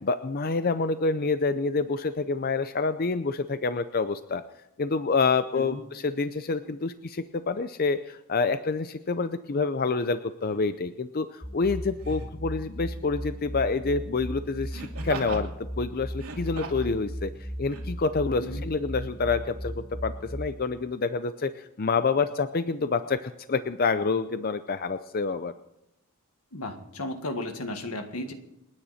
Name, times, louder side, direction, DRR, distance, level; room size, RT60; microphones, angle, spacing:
voice 1, 0.0-4.4 4.8-17.3 17.6-19.7 20.0-25.5, left 4 dB, 45° left, 11 dB, 0.5 m, -27 dB
Laughter, 10.5-10.7 12.0-12.4 14.7-15.5 16.1-16.9 17.7-17.8, right 3 dB, 80° right, 2.7 m, -38 dB
sound 1, 11.4-20.5, equal, 5° left, 0.9 m, -36 dB
voice 2, 26.5-28.3, left 1 dB, 85° left, 6 dB, 1.8 m, -34 dB
28.5 x 9.8 x 4.3 m, 0.86 s
head